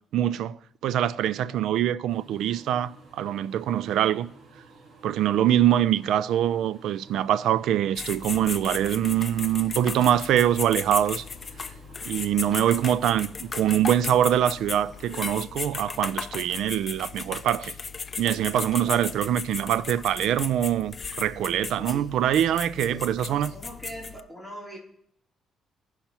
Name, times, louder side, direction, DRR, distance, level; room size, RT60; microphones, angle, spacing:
voice 1, 0.1-0.6 0.8-4.3 5.0-11.2 12.0-17.7 18.2-23.5, right 11 dB, 80° right, 0.3 m, -24 dB
voice 2, 1.4-1.7 5.5-5.6 18.8-19.1 21.8-22.2 22.7-24.8, equal, 10° right, 3.1 m, -42 dB
sound 1, 2.1-15.4, right 3 dB, 55° right, 1.5 m, -52 dB
sound 2, 8.0-24.2, left 5 dB, 35° left, 0.4 m, -36 dB
17.0 x 5.7 x 2.9 m
cardioid pair, 90°, 0 cm